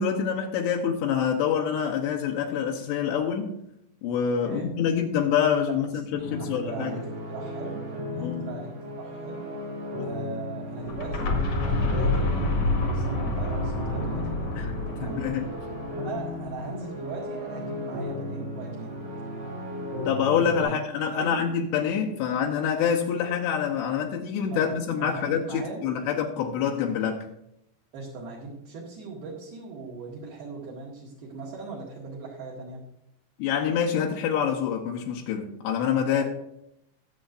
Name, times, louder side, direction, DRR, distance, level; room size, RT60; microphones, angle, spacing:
voice 1, 0.0-3.6 4.0-6.9 8.2-8.5 10.0-10.1 14.5-14.8 15.0-15.4 20.1-27.3 33.4-36.2, left 7 dB, 75° left, 0 dB, 3.0 m, -26 dB
sound 1, 6.1-20.6, left 1 dB, 80° right, 6.2 m, -35 dB
voice 2, 6.3-7.8 8.1-9.4 10.0-11.4 11.7-15.2 16.0-19.0 20.6-20.8 21.2-21.5 24.5-25.9 27.9-32.8 36.1-36.2, right 3 dB, 60° right, -5 dB, 3.4 m, -39 dB
sound 2, 10.8-16.6, left 2 dB, 55° left, 2.0 m, -28 dB
21.0 x 7.5 x 2.6 m, 0.81 s
omnidirectional pair, 5.2 m